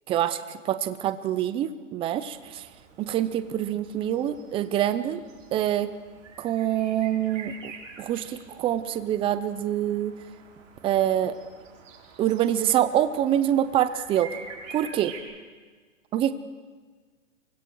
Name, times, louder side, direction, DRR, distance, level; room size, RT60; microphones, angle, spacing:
voice 1, 0.1-2.7 3.0-5.2 5.5-5.9 6.4-7.7 8.0-10.1 10.8-11.3 12.2-14.3 14.7-15.1 16.1-16.3, right 11 dB, 15° right, 12 dB, 0.6 m, -25 dB
sound 1, 2.2-15.2, right 5 dB, 75° right, 6.6 m, -47 dB
29.0 x 24.0 x 4.7 m, 1.5 s
hypercardioid pair, 145°, 39 cm